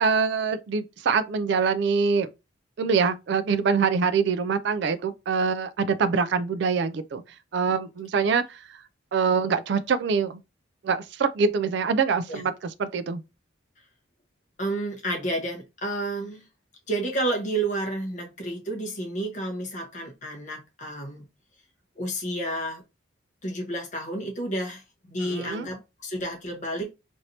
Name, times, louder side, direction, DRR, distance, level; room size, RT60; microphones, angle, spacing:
voice 1, 0.0-2.3 2.8-7.2 7.5-8.6 9.1-10.4 10.8-13.2 25.2-25.7, right 5 dB, 60° right, 0.3 m, -24 dB
voice 2, 14.6-16.4 16.9-21.2 22.0-22.8 23.4-26.9, right 1 dB, 40° left, 0.9 m, -30 dB
3.2 x 2.6 x 2.8 m
head